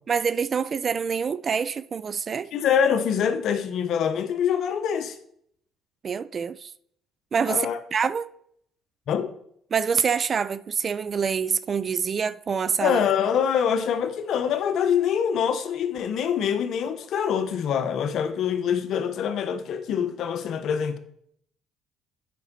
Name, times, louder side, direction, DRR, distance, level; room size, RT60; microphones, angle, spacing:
voice 1, 0.1-2.5 6.0-6.7 7.3-8.3 9.7-13.0, right 6 dB, 45° right, 0.4 m, -26 dB
voice 2, 2.5-5.2 7.5-7.8 9.1-9.3 12.8-21.0, left 8 dB, 65° left, 0.8 m, -25 dB
8.3 x 5.4 x 4.1 m
supercardioid pair, 75°, 0 cm